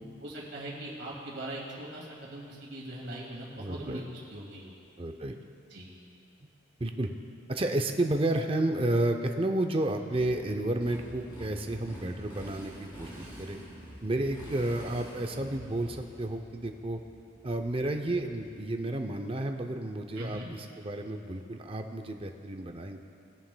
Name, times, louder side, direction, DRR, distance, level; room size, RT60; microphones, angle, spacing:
voice 1, 0.2-4.0 4.3-4.7 5.7-5.9 20.2-20.5, right 1 dB, 55° right, -4 dB, 2.2 m, -41 dB
voice 2, 3.6-4.1 5.0-5.3 6.8-7.1 7.5-13.6 14.0-17.0 17.4-23.0, right 1 dB, 25° right, 5 dB, 0.5 m, -31 dB
Motorcycle, 10.1-18.7, equal, 20° left, 2.3 m, -47 dB
22.0 x 7.3 x 2.2 m, 2.5 s
head